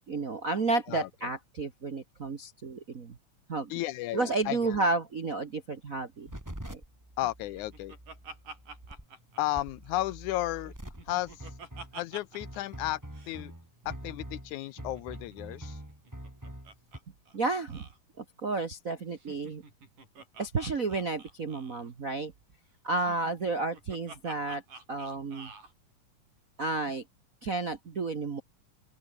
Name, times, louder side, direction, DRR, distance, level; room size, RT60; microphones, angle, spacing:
voice 1, 0.0-3.1 3.5-3.7 4.1-6.3 6.7-6.8 17.3-17.9 18.2-19.6 20.4-22.3 22.8-24.6 24.9-25.5 26.6-27.0 27.4-28.4, right 3 dB, 50° right, 1.0 m, -31 dB
voice 2, 3.7-4.8 7.2-7.9 9.4-10.7 11.1-11.5 11.9-13.5 13.9-15.8, left 16 dB, 75° left, 2.0 m, -34 dB
sound 1, 6.3-17.0, equal, 5° right, 5.1 m, -45 dB
Laughter, 7.2-10.2 10.5-12.6 12.8-12.9 13.1-13.4 14.6-17.0 17.3-17.4 17.7-18.0 19.1-21.9 22.9-25.7, right 3 dB, 80° right, 9.5 m, -49 dB
open air
omnidirectional pair, 3.7 m